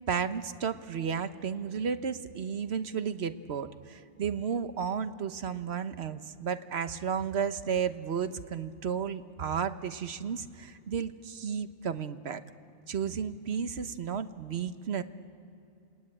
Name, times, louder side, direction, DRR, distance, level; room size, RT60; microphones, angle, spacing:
voice 1, 0.1-12.4 12.9-15.0, right 7 dB, 60° right, 11 dB, 1.2 m, -33 dB
28.0 x 19.5 x 9.8 m, 2.6 s
omnidirectional pair, 1.2 m